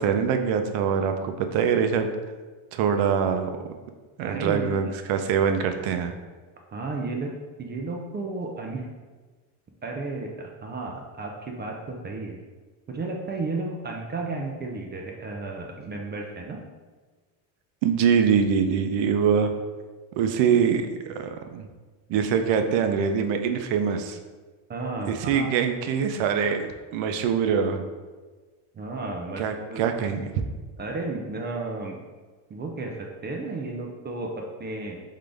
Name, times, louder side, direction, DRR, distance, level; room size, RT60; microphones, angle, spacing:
voice 1, 0.0-2.2 2.7-3.5 4.2-6.1 17.8-19.5 20.2-21.7 22.1-24.2 25.1-26.7 26.9-27.8 29.4-30.3, right 7 dB, 70° right, 7 dB, 0.6 m, -24 dB
voice 2, 4.2-4.9 6.7-7.3 7.6-8.9 9.8-12.4 12.9-16.6 24.7-25.5 28.7-29.8 30.8-32.0 32.5-35.0, right 3 dB, 25° right, 1 dB, 0.3 m, -33 dB
3.8 x 3.7 x 3.4 m, 1.3 s
cardioid pair, 130°, 47 cm